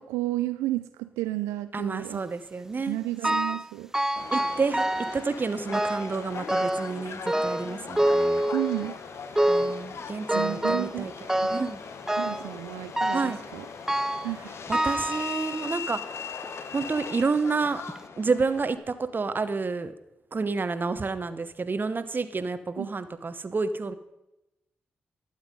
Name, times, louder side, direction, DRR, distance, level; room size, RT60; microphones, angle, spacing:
voice 1, 0.0-2.2 2.9-3.9 8.5-9.0 10.3-11.6 12.2-13.7 14.2-14.5 22.8-22.9, right 16 dB, 90° right, 11 dB, 0.4 m, -32 dB
voice 2, 1.7-3.0 3.3-3.4 4.3-4.9 5.1-8.4 9.5-11.1 11.5-11.8 13.1-13.4 14.7-16.0 16.7-17.8 18.2-19.9 20.3-23.9, right 4 dB, 40° right, 12 dB, 0.9 m, -29 dB
sound 1, 3.2-3.7 3.9-5.2 5.7-6.2 6.5-7.0 7.3-8.9 9.4-9.8 10.3-11.0 11.3-11.7 12.1-12.5 13.0-13.4 13.9-14.3 14.7-15.8 16.4-16.5 17.3-17.4 17.9-18.0, right 1 dB, 10° right, 0.4 m, -26 dB
Subway metro underground, 4.2-18.8, left 6 dB, 65° left, 1.0 m, -40 dB
12.0 x 8.2 x 5.3 m, 0.94 s
hypercardioid pair, 40°, 5 cm